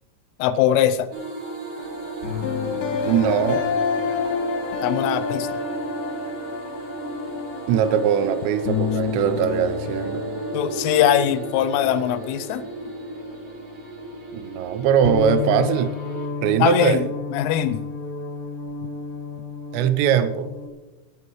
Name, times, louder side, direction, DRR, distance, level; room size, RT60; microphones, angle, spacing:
voice 1, 0.4-1.1 4.8-5.5 10.5-12.7 16.6-17.8, left 10 dB, 85° left, 11 dB, 3.2 m, -21 dB
sound 1, 1.1-16.3, right 3 dB, 60° right, 4.7 m, -37 dB
sound 2, 1.8-14.4 14.7-20.7, left 5 dB, 65° left, 2.1 m, -30 dB
voice 2, 3.1-3.6 7.7-10.2 14.3-15.9 16.4-17.0 19.7-20.5, right 8 dB, 80° right, 11 dB, 2.6 m, -21 dB
19.5 x 10.5 x 3.1 m, 1.2 s
omnidirectional pair, 5.8 m